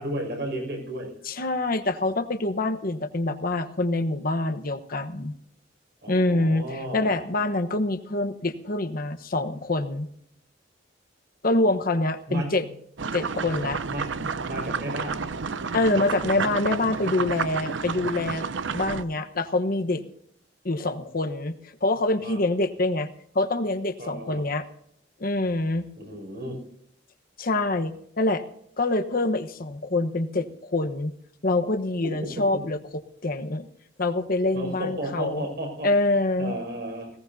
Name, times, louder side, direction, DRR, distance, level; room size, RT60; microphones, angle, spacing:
voice 1, 0.0-1.1 6.0-7.1 12.3-12.7 13.9-15.3 22.2-22.5 24.0-24.4 26.0-26.6 32.0-32.7 34.5-35.9 36.4-37.1, right 1 dB, 65° right, 2 dB, 6.0 m, -34 dB
voice 2, 1.2-5.3 6.1-10.1 11.4-12.7 13.1-13.8 15.7-18.5 18.7-20.0 20.6-23.1 23.3-24.6 25.2-25.9 27.4-28.4 28.8-31.1 31.4-32.8 33.2-33.7 34.0-35.5 35.8-36.6, left 2 dB, 50° left, 8 dB, 1.1 m, -25 dB
sound 1, 13.0-19.0, right 5 dB, 90° right, 0.6 m, -30 dB
19.5 x 17.5 x 2.7 m, 0.71 s
head